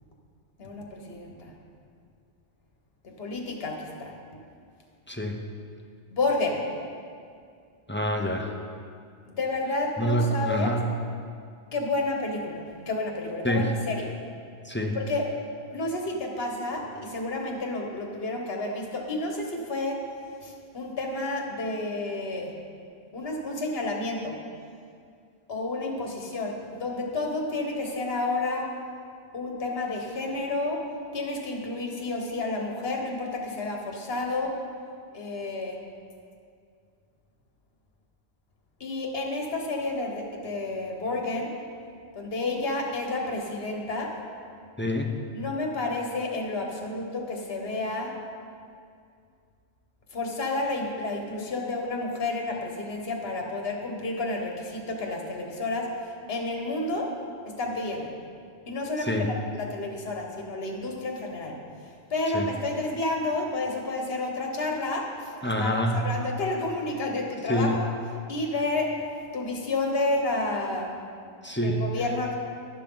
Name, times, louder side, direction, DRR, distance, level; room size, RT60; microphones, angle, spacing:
voice 1, 0.6-1.5 3.2-4.1 6.1-6.6 9.3-10.8 11.7-14.1 15.0-15.3 15.7-20.0 20.4-22.5 23.1-24.4 25.5-28.7 29.3-30.8 31.1-34.5 35.1-35.8 38.8-41.5 42.1-44.1 45.3-48.1 50.1-55.9 56.3-57.1 57.5-58.1 58.7-61.6 62.1-67.9 68.3-68.9 69.3-70.9 71.5-72.4, left 2 dB, 60° left, 1 dB, 1.6 m, -30 dB
voice 2, 5.1-5.4 7.9-8.5 10.0-10.8 13.4-13.7 14.6-15.0 44.8-45.1 59.1-59.3 62.3-62.5 65.4-66.0 67.5-67.7 71.4-71.8, equal, 10° left, 2 dB, 0.7 m, -26 dB
11.5 x 11.0 x 3.9 m, 2.3 s
omnidirectional pair, 1.2 m